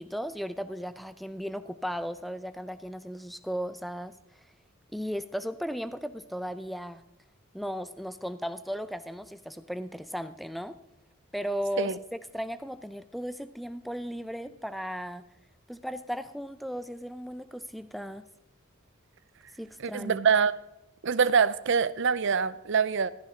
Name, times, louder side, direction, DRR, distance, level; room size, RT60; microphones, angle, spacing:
voice 1, 0.0-4.4 4.9-7.0 7.5-10.8 11.3-15.2 15.7-18.2 19.6-20.2, equal, ahead, 0.5 m, -36 dB
voice 2, 19.8-20.5 21.0-23.1, right 6 dB, 55° right, 0.5 m, -24 dB
15.0 x 14.0 x 3.7 m
head